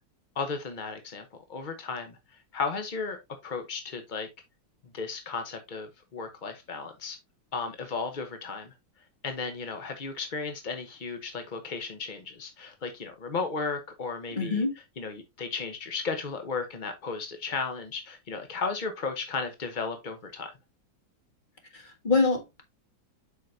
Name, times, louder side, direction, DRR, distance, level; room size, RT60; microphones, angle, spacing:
voice 1, 0.4-4.3 4.9-7.2 7.5-8.7 9.2-14.6 15.0-20.5, left 4 dB, 50° left, 0.6 m, -35 dB
voice 2, 14.4-14.7 21.7-22.6, left 3 dB, 25° left, 1.6 m, -25 dB
7.7 x 5.6 x 2.6 m
omnidirectional pair, 2.1 m